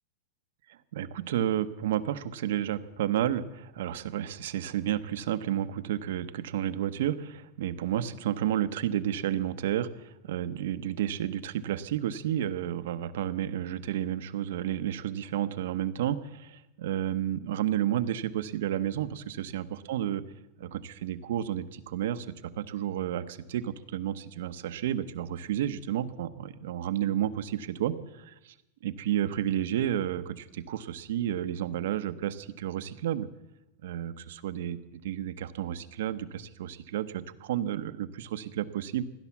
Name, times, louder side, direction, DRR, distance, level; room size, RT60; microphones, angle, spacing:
voice 1, 0.7-20.2 20.6-28.5 28.8-33.3 33.8-39.0, right 11 dB, 65° right, 12 dB, 0.9 m, -31 dB
16.0 x 11.5 x 7.2 m, 0.94 s
supercardioid pair, 180°, 0 cm